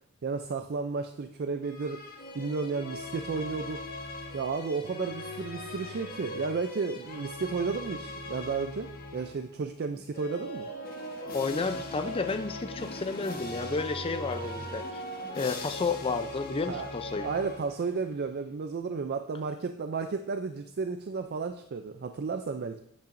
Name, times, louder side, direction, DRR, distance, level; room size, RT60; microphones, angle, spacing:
voice 1, 0.2-2.0 2.3-3.8 4.3-10.7 16.7-16.9 17.2-22.8, right 4 dB, 50° right, 7 dB, 0.4 m, -33 dB
sound 1, 1.6-9.5 10.1-18.0, left 1 dB, 45° left, 1.4 m, -40 dB
voice 2, 11.3-15.0 15.4-17.3, left 4 dB, 25° left, 9 dB, 0.5 m, -31 dB
8.6 x 8.6 x 2.6 m, 0.69 s
head